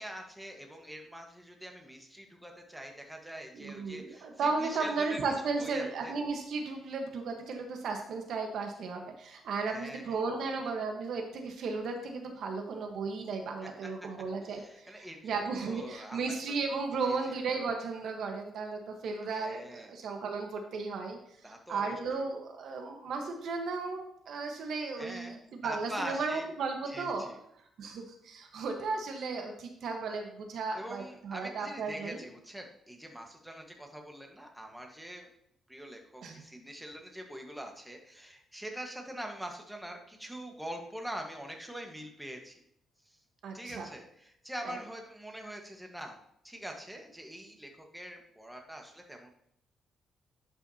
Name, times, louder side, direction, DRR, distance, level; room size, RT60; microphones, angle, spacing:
voice 1, 0.0-5.2 5.6-6.2 9.7-10.2 13.6-13.7 14.4-16.3 17.1-17.3 19.3-19.9 21.4-22.2 25.0-26.4 26.9-27.4 30.7-35.3 35.7-42.6 43.1-43.2 43.5-46.2 46.4-49.3, equal, 5° right, 2 dB, 1.4 m, -44 dB
voice 2, 3.5-21.2 21.7-27.3 27.8-32.2 36.2-36.4 43.4-43.9 44.6-44.8, right 4 dB, 70° right, 3 dB, 1.2 m, -35 dB
11.0 x 5.6 x 2.8 m, 0.71 s
cardioid pair, 90°, 0 cm